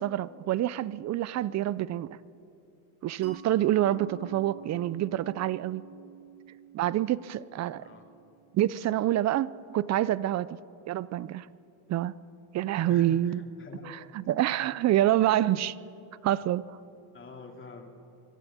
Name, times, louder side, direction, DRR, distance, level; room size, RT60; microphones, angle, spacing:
voice 1, 0.0-2.1 3.0-5.8 6.7-7.8 8.5-10.6 10.9-11.5 11.9-12.1 12.5-13.4 13.9-15.7 16.2-16.6, right 13 dB, 35° right, 19 dB, 0.5 m, -27 dB
Mallet percussion, 3.2-8.6, right 7 dB, 50° right, 3.6 m, -48 dB
voice 2, 7.7-8.1 12.9-14.3 15.2-15.5 17.1-17.9, left 3 dB, 25° left, 3 dB, 2.5 m, -47 dB
24.0 x 13.0 x 8.6 m, 2.6 s
cardioid pair, 120°, 48 cm